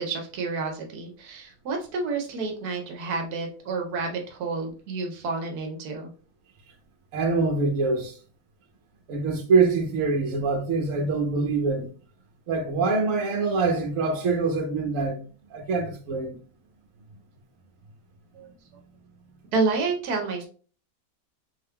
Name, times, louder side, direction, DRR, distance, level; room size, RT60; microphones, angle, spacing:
voice 1, 0.0-6.1 18.3-18.5 19.5-20.5, right 4 dB, 90° right, 1.3 m, -29 dB
voice 2, 7.1-8.1 9.1-11.9 12.5-15.2 15.5-16.4, right 4 dB, 60° right, 1.2 m, -24 dB
4.1 x 3.5 x 2.2 m
omnidirectional pair, 1.6 m